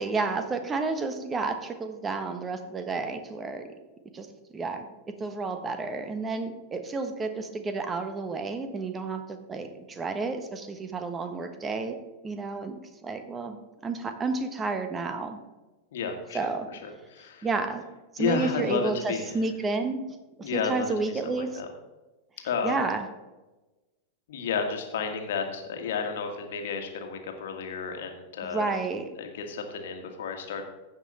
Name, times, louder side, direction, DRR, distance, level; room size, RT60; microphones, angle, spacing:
voice 1, 0.0-3.7 4.1-4.3 4.5-4.9 5.2-11.9 12.2-12.8 13.0-15.4 16.3-16.7 17.4-17.8 18.1-20.1 20.4-21.6 22.6-23.0 28.4-29.1, right 3 dB, 20° right, 8 dB, 1.2 m, -31 dB
voice 2, 15.9-16.4 17.1-17.5 18.2-19.3 20.4-20.9 21.3-21.7 22.4-22.8 24.3-28.7 29.2-30.7, left 5 dB, 65° left, 4 dB, 1.6 m, -31 dB
15.5 x 5.4 x 4.2 m, 1.1 s
figure-of-eight pair, 90°, 0 cm